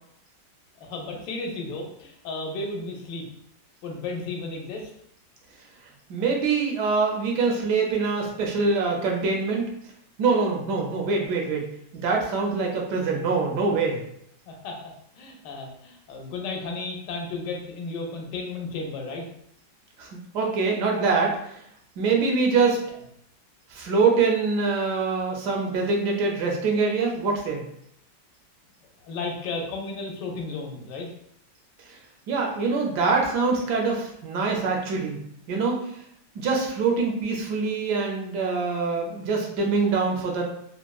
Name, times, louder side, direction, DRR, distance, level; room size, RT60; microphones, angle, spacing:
voice 1, 0.8-3.3 3.8-4.9 14.5-14.8 15.2-19.2 29.0-31.1, left 3 dB, 80° left, 1 dB, 1.2 m, -33 dB
voice 2, 6.1-9.6 10.2-11.6 11.9-14.0 20.0-20.1 20.3-21.4 22.0-22.8 23.7-27.6 32.3-35.2 35.5-35.8 36.4-40.4, right 4 dB, 75° right, 0 dB, 1.1 m, -24 dB
3.5 x 2.1 x 2.3 m, 0.71 s
omnidirectional pair, 1.9 m